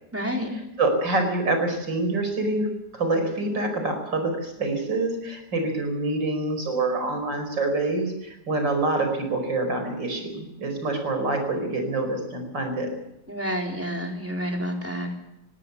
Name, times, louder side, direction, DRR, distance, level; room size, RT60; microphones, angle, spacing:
voice 1, 0.1-0.5 13.3-15.2, equal, 5° right, 0 dB, 4.0 m, -29 dB
voice 2, 0.8-12.9, right 2 dB, 85° right, 5 dB, 5.7 m, -26 dB
20.0 x 17.5 x 8.4 m, 0.89 s
omnidirectional pair, 1.9 m